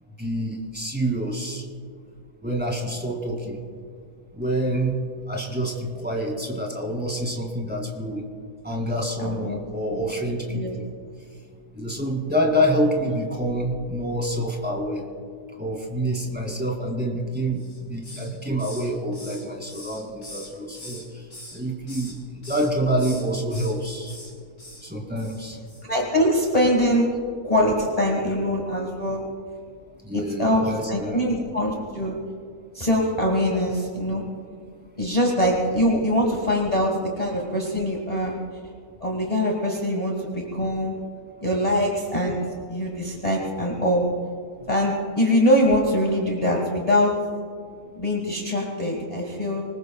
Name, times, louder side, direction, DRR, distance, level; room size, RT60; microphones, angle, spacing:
voice 1, 0.2-1.6 2.4-3.6 4.3-8.2 8.6-10.9 11.8-15.0 15.6-21.2 21.5-22.2 22.5-24.1 24.8-25.6 30.0-31.2, equal, 5° right, 0 dB, 2.4 m, -27 dB
voice 2, 9.2-9.6 9.9-10.0 10.5-10.8 25.8-27.1 27.4-29.2 30.1-32.2 32.7-34.2 35.0-38.3 39.0-40.9 41.4-42.4 42.7-44.0 44.7-47.1 48.0-49.6, equal, 25° left, -2 dB, 1.8 m, -23 dB
Hiss, 17.6-18.3 18.6-21.0 21.3-22.1 22.4-22.7 23.0-23.7 24.0-24.3 24.6-24.8 25.2-25.4 25.7-25.8, left 1 dB, 55° left, 5.7 m, -42 dB
25.0 x 20.5 x 2.3 m, 2.1 s
omnidirectional pair, 1.6 m